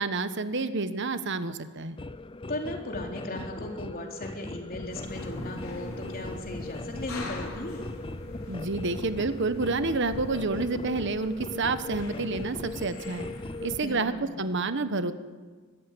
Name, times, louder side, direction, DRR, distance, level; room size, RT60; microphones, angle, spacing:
voice 1, 0.0-2.0 8.5-13.3 13.6-15.1, right 3 dB, 60° right, 11 dB, 1.2 m, -29 dB
sound 1, 2.0-13.8, left 2 dB, 25° left, 0.6 m, -39 dB
voice 2, 2.5-7.8 13.8-14.4, left 1 dB, 45° left, 1 dB, 3.9 m, -37 dB
sound 2, 4.7-10.3, equal, 70° left, 5.0 m, -49 dB
sound 3, 4.9-14.1, left 1 dB, 90° left, 4.4 m, -44 dB
23.5 x 14.0 x 10.0 m, 1.4 s
head